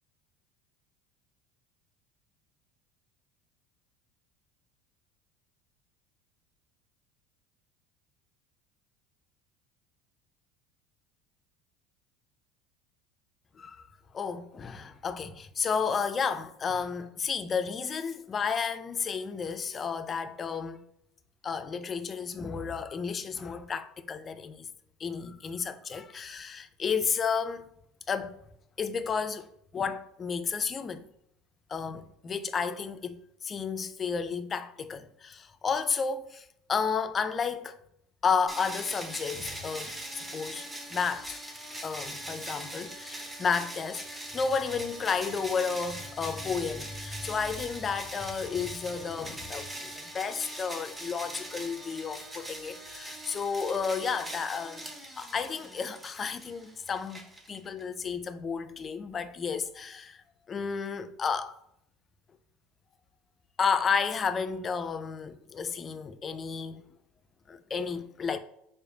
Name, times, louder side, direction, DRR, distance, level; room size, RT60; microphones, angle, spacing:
voice 1, 14.1-20.8 21.4-24.7 25.0-27.7 28.1-28.4 28.8-29.5 29.7-31.1 31.7-37.8 38.2-41.4 41.8-54.9 55.2-57.2 57.5-60.2 60.5-61.6 63.6-66.8 67.5-68.4, left 6 dB, 30° left, 0.3 m, -32 dB
sound 1, 38.5-57.8, right 1 dB, 10° right, 0.8 m, -42 dB
4.7 x 2.4 x 2.7 m
supercardioid pair, 110°, 0 cm